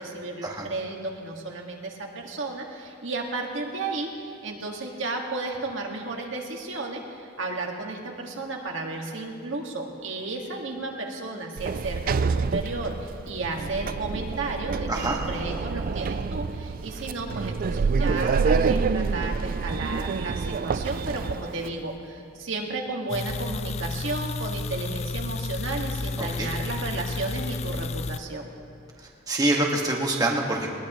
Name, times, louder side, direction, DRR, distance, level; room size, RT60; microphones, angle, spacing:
voice 1, 0.0-12.9 13.3-28.4, right 3 dB, 70° right, 0 dB, 1.9 m, -33 dB
Sliding door, 11.6-21.7, right 5 dB, 45° right, 0.4 m, -27 dB
sound 1, 23.1-28.2, left 3 dB, 35° left, 0.4 m, -31 dB
voice 2, 26.2-26.5 29.3-30.7, right 2 dB, 20° right, -1 dB, 1.7 m, -25 dB
20.5 x 20.5 x 3.1 m, 2.4 s
head